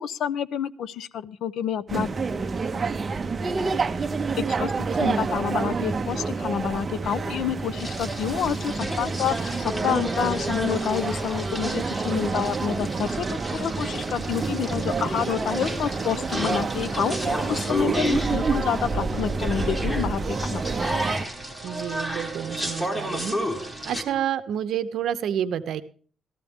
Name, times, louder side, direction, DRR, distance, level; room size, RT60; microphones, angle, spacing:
voice 1, 0.0-2.1 4.5-20.6, left 9 dB, 65° left, 15 dB, 0.5 m, -28 dB
sound 1, 1.9-21.2, right 4 dB, 25° right, 0.6 m, -28 dB
sound 2, 7.8-24.0, equal, 10° left, 1.1 m, -32 dB
sound 3, 12.2-24.2, right 5 dB, 40° right, 1.0 m, -41 dB
voice 2, 21.6-23.4 23.8-25.8, right 9 dB, 65° right, 12 dB, 0.7 m, -29 dB
13.5 x 13.0 x 3.6 m, 0.42 s
cardioid pair, 165°, 0 cm